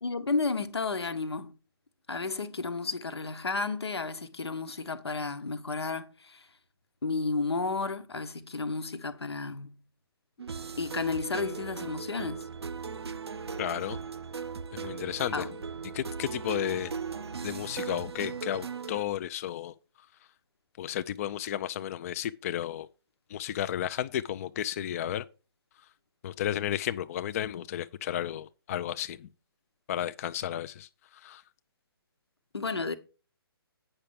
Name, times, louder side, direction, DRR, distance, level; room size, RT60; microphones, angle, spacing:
voice 1, 0.0-1.5 2.1-6.5 7.0-9.8 10.8-12.5 15.3-15.5 32.5-32.9, left 4 dB, 85° left, 1.1 m, -32 dB
sound 1, 10.4-19.0, right 5 dB, 85° right, 0.5 m, -38 dB
voice 2, 13.6-14.0 14.8-15.4 15.9-16.9 17.4-19.7 20.8-22.9 23.3-25.3 26.2-29.3 29.9-31.4, left 11 dB, 35° left, 0.4 m, -33 dB
9.0 x 5.8 x 5.2 m
figure-of-eight pair, 140°, 13 cm